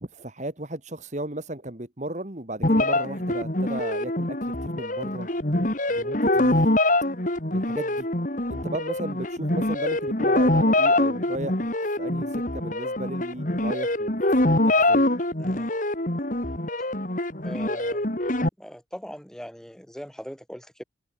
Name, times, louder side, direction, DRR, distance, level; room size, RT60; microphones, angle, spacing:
voice 1, 0.0-4.4 4.6-5.3 5.9-6.7 7.5-8.1 8.5-15.0, right 1 dB, 35° right, 1.9 m, -35 dB
sound 1, 2.6-18.5, left 1 dB, 40° left, 2.6 m, -24 dB
voice 2, 17.4-18.1 18.6-20.8, equal, 5° left, 3.0 m, -40 dB
head